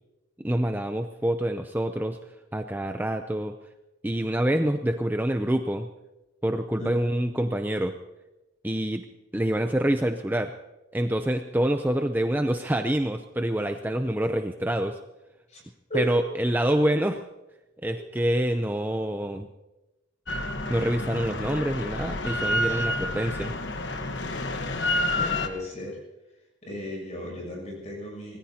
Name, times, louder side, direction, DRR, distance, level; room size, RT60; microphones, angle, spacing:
voice 1, 0.4-3.6 4.0-5.9 6.4-8.0 8.6-9.0 9.3-10.6 10.9-15.0 15.9-17.3 17.8-19.5 20.7-23.5, right 1 dB, 10° right, 6 dB, 0.5 m, -26 dB
Drill, 20.3-25.5, left 1 dB, 65° left, 1.2 m, -29 dB
voice 2, 25.1-26.0 26.6-28.4, equal, 35° left, -2 dB, 7.5 m, -35 dB
25.0 x 19.0 x 2.9 m, 1.0 s
head